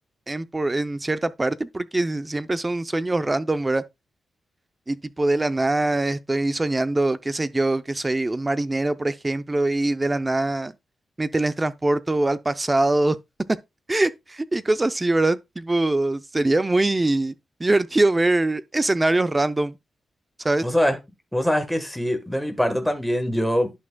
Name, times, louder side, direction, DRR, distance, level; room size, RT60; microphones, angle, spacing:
voice 1, 0.3-3.8 4.9-10.7 11.2-13.2 13.9-17.3 17.6-19.8 20.4-20.7, right 2 dB, 20° right, 0.5 m, -23 dB
voice 2, 20.6-21.0 21.3-23.7, equal, ahead, 1.3 m, -23 dB
11.0 x 6.0 x 2.2 m
wide cardioid pair, 125°, 0 cm